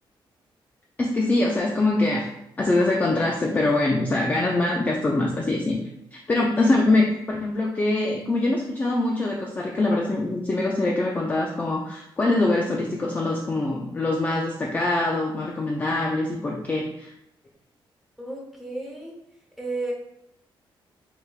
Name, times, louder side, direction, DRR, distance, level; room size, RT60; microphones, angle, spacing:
voice 1, 1.0-2.3 2.6-5.8 6.1-17.1, left 2 dB, 20° left, -1 dB, 0.3 m, -23 dB
voice 2, 6.6-6.9 18.2-19.1 19.6-19.9, right 2 dB, ahead, -3 dB, 0.8 m, -33 dB
4.6 x 3.3 x 2.4 m, 0.82 s
wide cardioid pair, 175°, 9 cm